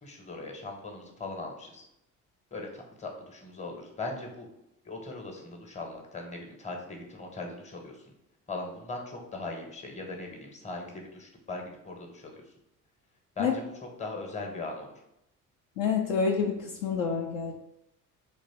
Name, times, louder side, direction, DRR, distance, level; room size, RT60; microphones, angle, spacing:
voice 1, 0.0-1.8 2.5-4.5 4.8-7.9 8.5-12.4 13.4-13.7 14.0-14.9, left 2 dB, 15° left, 3 dB, 0.9 m, -39 dB
voice 2, 15.8-17.5, left 6 dB, 60° left, 1 dB, 0.6 m, -28 dB
3.3 x 3.1 x 4.2 m, 0.83 s
figure-of-eight pair, 50°, 44 cm